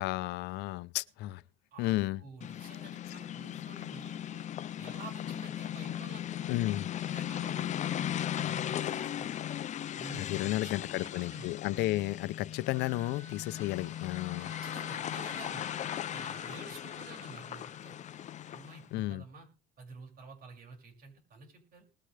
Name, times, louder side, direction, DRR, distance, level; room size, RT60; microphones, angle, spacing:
voice 1, 0.0-1.4 1.8-2.2 6.5-6.8 10.1-14.5 18.9-19.2, left 17 dB, 90° left, 0.5 m, -33 dB
voice 2, 1.7-4.4 4.8-6.7 7.1-9.3 10.0-11.6 14.4-15.7 16.1-18.0 18.5-19.5 19.8-21.9, right 3 dB, 60° right, 6.0 m, -50 dB
sound 1, 2.4-18.9, left 11 dB, 45° left, 0.5 m, -38 dB
Wind instrument woodwind instrument, 12.7-17.9, right 4 dB, 80° right, 2.0 m, -55 dB
20.0 x 9.9 x 3.3 m
cardioid pair, 110°, 17 cm